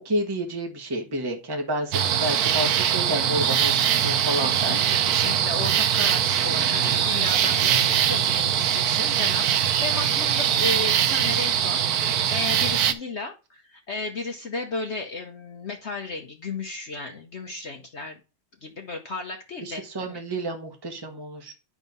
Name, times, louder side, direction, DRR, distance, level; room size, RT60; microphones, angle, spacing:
voice 1, 0.0-4.8 19.6-21.5, right 1 dB, 15° right, 3 dB, 1.1 m, -30 dB
sound 1, 1.9-12.9, right 9 dB, 70° right, 0.9 m, -22 dB
voice 2, 4.4-18.2 18.6-20.2, left 3 dB, 60° left, 3 dB, 0.7 m, -34 dB
10.5 x 3.6 x 5.3 m, 0.32 s
omnidirectional pair, 2.3 m